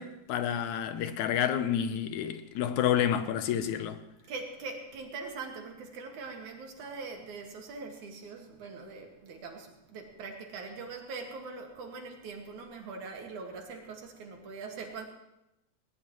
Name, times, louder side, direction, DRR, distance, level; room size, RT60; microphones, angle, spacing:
voice 1, 0.0-4.0, left 9 dB, 80° left, 2.2 m, -29 dB
voice 2, 4.3-15.1, right 4 dB, 80° right, 3.4 m, -42 dB
19.0 x 18.5 x 3.1 m
omnidirectional pair, 3.4 m